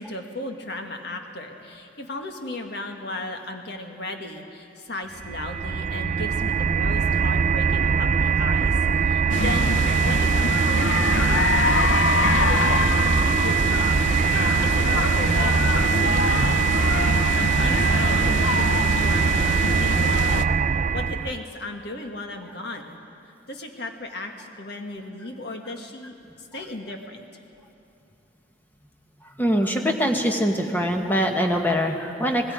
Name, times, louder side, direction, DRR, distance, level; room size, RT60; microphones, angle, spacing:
voice 1, 0.0-11.9 12.3-16.7 17.1-19.5 19.8-20.4 20.9-23.0 23.5-27.3, left 2 dB, 60° left, 3 dB, 1.7 m, -36 dB
sound 1, 5.2-21.4, right 6 dB, 40° right, 0.4 m, -22 dB
sound 2, 9.3-20.4, left 5 dB, 85° left, 0.6 m, -26 dB
voice 2, 29.4-32.5, equal, 10° left, 2 dB, 1.4 m, -23 dB
26.0 x 19.5 x 5.1 m, 2.7 s
head